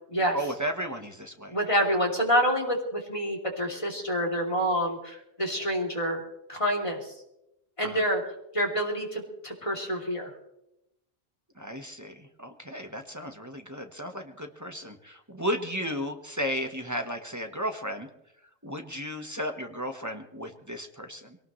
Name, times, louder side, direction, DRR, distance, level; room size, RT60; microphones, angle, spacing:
voice 1, 0.3-1.6 7.8-8.0 11.5-18.1 18.6-21.4, equal, 15° right, 4 dB, 1.3 m, -34 dB
voice 2, 1.5-6.2 6.5-7.0 7.8-8.2 8.5-10.3, equal, 25° left, 0 dB, 3.1 m, -27 dB
23.0 x 18.5 x 3.2 m, 0.84 s
omnidirectional pair, 1.2 m